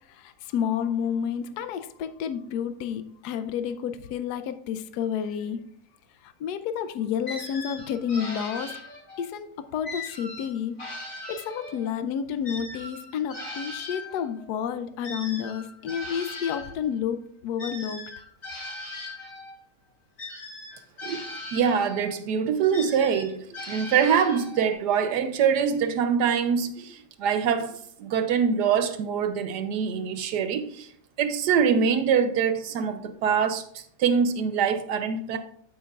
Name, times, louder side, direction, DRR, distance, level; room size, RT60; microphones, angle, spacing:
voice 1, 0.1-5.7 6.2-8.8 9.2-10.8 11.1-18.0, left 8 dB, 80° left, 1.1 m, -30 dB
sound 1, 7.3-9.3 9.8-11.9 12.4-16.8 17.6-19.6 20.2-22.2 22.7-24.7, left 2 dB, 55° left, 2.4 m, -39 dB
voice 2, 21.5-30.9 31.2-35.4, right 7 dB, 85° right, 1.4 m, -24 dB
14.5 x 5.3 x 2.4 m
omnidirectional pair, 1.7 m